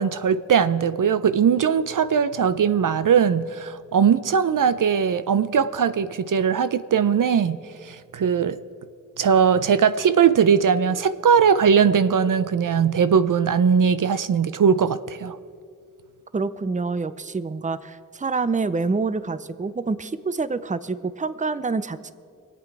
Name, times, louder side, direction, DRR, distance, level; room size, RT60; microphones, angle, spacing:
voice 1, 0.0-7.6 7.8-8.6 9.2-15.4, right 7 dB, 70° right, 13 dB, 0.5 m, -20 dB
voice 2, 16.3-22.1, right 4 dB, 20° right, 14 dB, 0.6 m, -27 dB
22.5 x 8.5 x 4.7 m, 2.3 s
cardioid pair, 45°, 34 cm